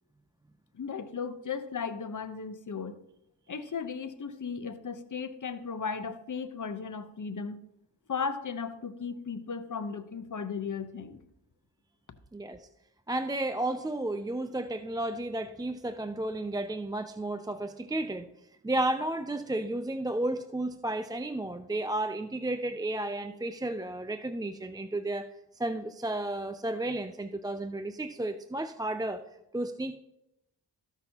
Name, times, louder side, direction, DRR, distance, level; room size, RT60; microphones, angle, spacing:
voice 1, 0.7-2.9 3.5-7.6 8.1-11.2, left 5 dB, 45° left, 10 dB, 0.9 m, -36 dB
voice 2, 12.3-12.7 13.1-18.3 18.6-25.3 25.5-29.2 29.5-29.9, right 1 dB, 10° right, 9 dB, 0.4 m, -32 dB
13.5 x 6.0 x 2.9 m, 0.84 s
cardioid pair, 45°, 43 cm